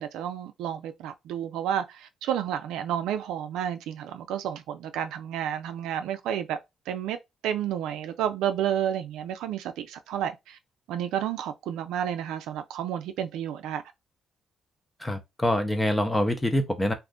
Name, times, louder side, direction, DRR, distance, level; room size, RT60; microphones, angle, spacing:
voice 1, 0.0-6.6 6.9-7.2 7.4-10.6 10.9-13.8, right 10 dB, 90° right, 0.4 m, -31 dB
voice 2, 15.0-16.9, left 1 dB, 10° left, 0.8 m, -25 dB
2.6 x 2.4 x 3.5 m
cardioid pair, 90°, 0 cm